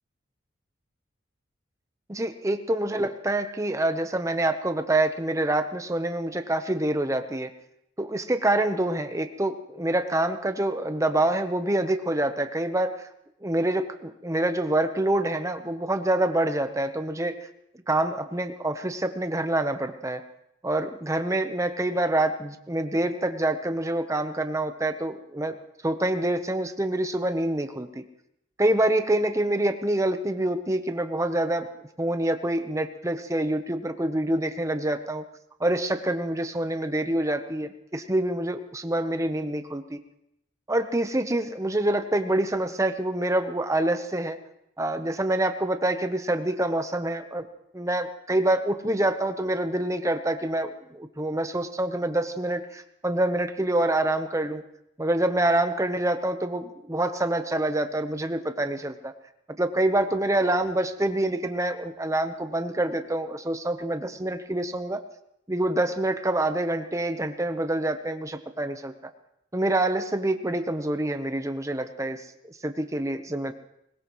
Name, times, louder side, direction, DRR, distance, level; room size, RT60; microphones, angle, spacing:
voice 1, 2.1-7.5 8.0-13.1 13.4-17.4 17.9-20.2 20.6-25.5 25.8-28.0 28.6-31.7 32.0-35.2 35.6-40.0 40.7-44.4 44.8-47.5 47.7-54.6 55.0-59.1 59.6-65.0 65.5-68.9 69.5-73.5, right 1 dB, 15° right, 8 dB, 0.9 m, -26 dB
20.5 x 19.0 x 3.1 m, 0.79 s
head